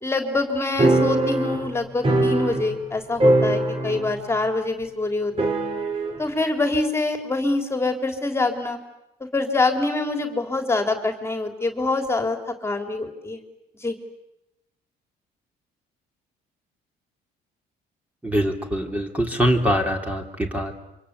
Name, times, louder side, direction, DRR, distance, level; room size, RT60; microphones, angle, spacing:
voice 1, 0.0-5.6 6.2-8.8 9.2-13.4 13.8-14.0, left 2 dB, 15° left, 5 dB, 3.6 m, -25 dB
sound 1, 0.8-2.9 3.2-4.2 4.5-4.6 5.4-6.2, right 2 dB, 35° right, 4.2 m, -21 dB
voice 2, 18.2-20.7, equal, 10° right, 2 dB, 3.6 m, -23 dB
28.0 x 25.5 x 8.4 m, 0.90 s
cardioid pair, 110°, 17 cm